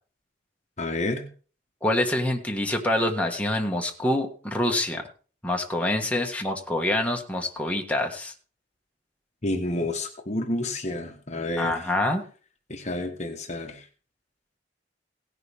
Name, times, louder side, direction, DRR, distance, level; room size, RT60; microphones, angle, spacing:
voice 1, 0.8-1.3 9.4-11.9 12.7-13.9, left 1 dB, 40° left, 5 dB, 1.4 m, -30 dB
voice 2, 1.8-5.0 5.4-8.3 11.6-12.2, left 1 dB, 5° left, 1 dB, 1.7 m, -26 dB
17.0 x 11.0 x 3.6 m, 0.40 s
head